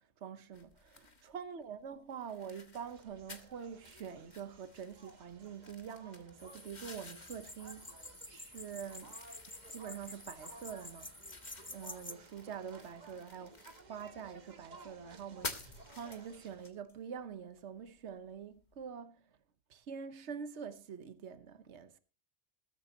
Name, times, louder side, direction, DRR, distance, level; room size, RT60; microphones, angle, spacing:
voice 1, 0.2-9.2 9.7-11.1 11.7-13.6 13.9-19.2 19.7-22.0, right 7 dB, 75° right, 1.3 m, -46 dB
sound 1, 0.5-18.9, left 3 dB, 40° left, 1.7 m, -52 dB
sound 2, 2.9-16.7, right 3 dB, 40° right, 1.2 m, -57 dB
sound 3, 6.4-12.1, left 2 dB, 10° left, 0.7 m, -50 dB
20.5 x 10.5 x 2.8 m
omnidirectional pair, 1.2 m